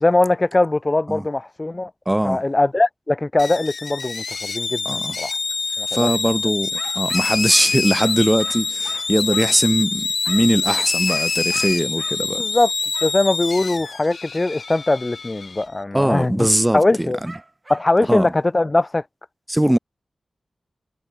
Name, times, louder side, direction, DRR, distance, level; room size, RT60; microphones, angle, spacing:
voice 1, 0.0-1.9 2.2-5.4 5.8-6.1 12.4-12.7 13.0-16.5 16.7-17.2 17.7-19.0, left 2 dB, 25° left, 1.2 m, -20 dB
voice 2, 2.1-2.4 4.9-5.2 5.9-12.4 15.9-17.3 18.1-18.3 19.5-19.8, right 1 dB, 10° right, 0.5 m, -20 dB
sound 1, 3.4-15.6, left 4 dB, 55° left, 0.6 m, -25 dB
sound 2, 6.7-9.7 10.2-12.2 12.9-13.2 17.2-17.9, right 2 dB, 25° right, 6.4 m, -40 dB
wide cardioid pair, 125°, 0 cm